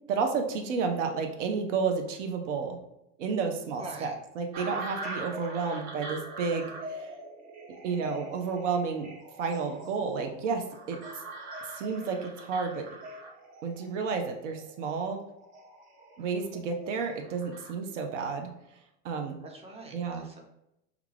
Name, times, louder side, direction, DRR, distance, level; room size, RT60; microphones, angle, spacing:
voice 1, 0.1-2.8 3.2-7.1 7.8-9.1 9.4-11.0 11.7-12.9 13.6-15.2 16.2-18.5 19.0-19.4 19.9-20.3, right 5 dB, 85° right, 4 dB, 0.5 m, -31 dB
voice 2, 3.8-4.1 7.9-8.1 16.2-16.6 19.4-20.4, right 2 dB, 15° right, 1 dB, 0.6 m, -45 dB
sound 1, 4.5-17.7, right 1 dB, 50° right, 0.8 m, -42 dB
2.3 x 2.3 x 3.2 m, 0.84 s
hypercardioid pair, 80°, 36 cm